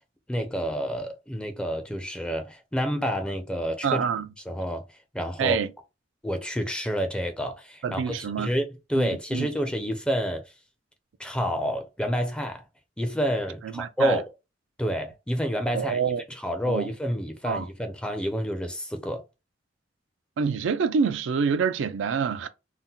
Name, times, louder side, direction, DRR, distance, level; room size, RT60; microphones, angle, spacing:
voice 1, 0.3-4.0 4.5-4.8 5.1-5.6 6.2-10.4 11.2-12.6 13.0-14.2 14.8-16.0 16.3-19.2, equal, 5° left, 0.4 m, -29 dB
voice 2, 3.8-4.3 5.4-5.7 7.8-8.5 8.9-9.5 13.6-14.2 15.7-16.2 16.7-16.9 17.4-17.7 20.4-22.5, right 6 dB, 80° right, 0.4 m, -26 dB
2.7 x 2.1 x 3.6 m
head